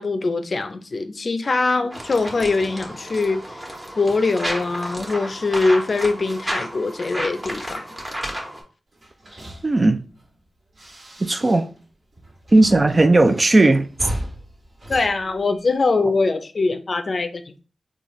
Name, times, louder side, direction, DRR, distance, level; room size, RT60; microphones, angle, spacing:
voice 1, 0.0-3.4 4.0-7.8 14.9-17.6, left 3 dB, 60° left, 0.4 m, -22 dB
sound 1, 1.9-8.6, equal, 15° right, 1.1 m, -32 dB
sound 2, 8.9-11.9 12.1-16.0, equal, 60° right, 1.5 m, -37 dB
voice 2, 9.6-10.0 11.2-11.7 12.5-13.9, right 2 dB, 40° right, 0.4 m, -16 dB
3.9 x 2.4 x 3.0 m
cardioid pair, 50°, 0 cm